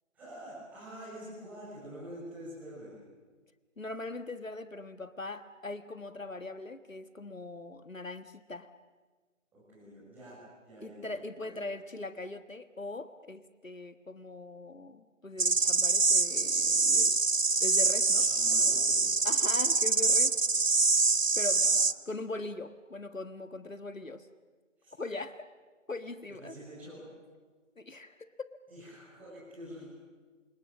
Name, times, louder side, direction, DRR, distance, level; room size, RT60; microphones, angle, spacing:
voice 1, 0.1-3.0 9.5-11.1 11.4-11.6 18.0-19.2 19.5-19.8 21.6-21.8 24.8-24.9 26.3-27.1 28.7-29.9, equal, 5° right, -9 dB, 6.7 m, -47 dB
voice 2, 3.8-8.7 10.8-17.2 17.6-18.3 19.2-20.4 21.3-21.7 22.1-24.3 25.0-25.4 25.9-26.5 27.8-28.3, left 2 dB, 80° left, 11 dB, 1.6 m, -40 dB
sound 1, 15.4-21.9, right 4 dB, 80° right, 1.0 m, -25 dB
28.5 x 27.5 x 7.5 m, 1.4 s
figure-of-eight pair, 160°, 39 cm